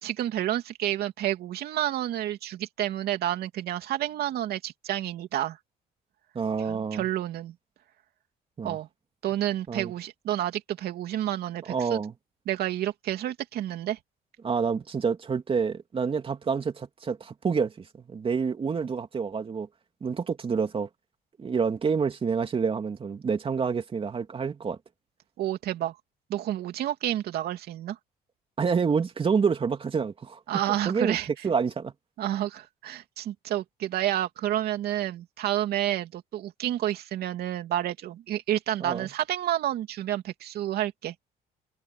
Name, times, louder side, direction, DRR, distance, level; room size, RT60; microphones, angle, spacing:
voice 1, 0.0-5.6 6.7-7.5 8.6-8.9 9.2-12.0 12.5-14.0 25.4-25.9 26.3-28.0 30.5-31.3 32.2-41.1, right 12 dB, 70° right, 3.0 m, -30 dB
voice 2, 6.3-7.1 8.6-8.8 9.7-9.9 11.7-12.1 14.4-17.7 18.1-19.7 20.0-20.9 21.4-24.8 28.6-30.4 30.8-31.2 31.4-31.9 38.8-39.1, right 5 dB, 35° right, 3.0 m, -28 dB
cardioid pair, 110°, 17 cm